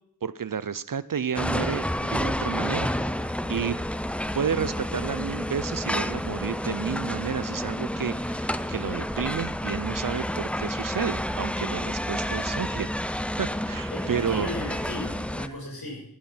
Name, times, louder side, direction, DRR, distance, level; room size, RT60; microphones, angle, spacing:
voice 1, 0.2-3.0 3.5-3.8 4.3-12.9 13.4-14.5, right 7 dB, 55° right, 17 dB, 0.6 m, -31 dB
sound 1, 1.3-15.5, equal, 5° left, 0.5 m, -30 dB
voice 2, 13.9-16.0, left 1 dB, 60° left, 0 dB, 6.2 m, -36 dB
13.0 x 9.6 x 5.8 m, 0.72 s
wide cardioid pair, 70°, 40 cm